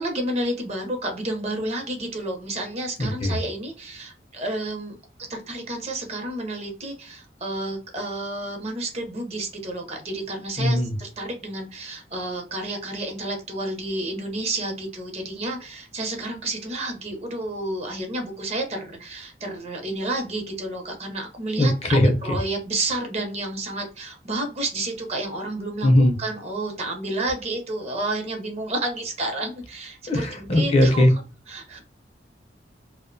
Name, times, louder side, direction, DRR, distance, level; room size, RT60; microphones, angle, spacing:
voice 1, 0.0-4.9 5.3-31.0 31.5-31.8, right 2 dB, 40° right, 3 dB, 0.6 m, -30 dB
voice 2, 3.0-3.4 10.6-10.9 21.6-22.1 25.8-26.1 30.1-31.1, left 1 dB, 35° left, 4 dB, 0.4 m, -19 dB
2.4 x 2.0 x 2.5 m, 0.35 s
head